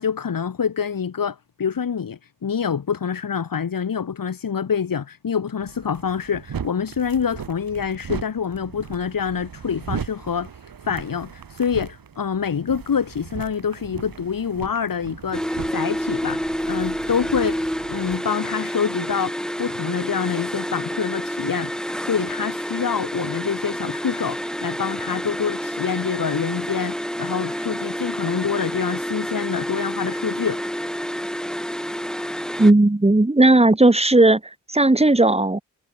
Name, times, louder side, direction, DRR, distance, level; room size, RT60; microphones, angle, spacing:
voice 1, 0.0-15.4 15.7-21.7 22.0-30.7, left 7 dB, 70° left, 4.6 m, -26 dB
sound 1, 5.6-18.2, right 7 dB, 75° right, 7.7 m, -37 dB
sound 2, 15.3-32.7, equal, ahead, 6.7 m, -29 dB
voice 2, 32.6-34.4 34.7-35.6, right 2 dB, 15° right, 2.4 m, -15 dB
supercardioid pair, 40°, 35 cm